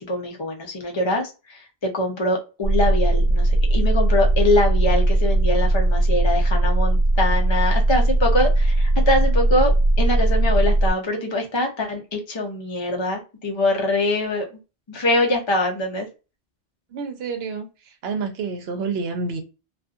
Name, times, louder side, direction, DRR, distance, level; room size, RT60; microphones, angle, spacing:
voice 1, 0.0-14.5 14.9-16.1, left 1 dB, 30° left, 0.6 m, -23 dB
sound 1, 2.6-10.9, right 1 dB, 85° left, 0.9 m, -19 dB
voice 2, 16.9-17.7 18.0-19.4, right 4 dB, 70° right, 0.9 m, -28 dB
2.6 x 2.5 x 2.4 m
omnidirectional pair, 1.1 m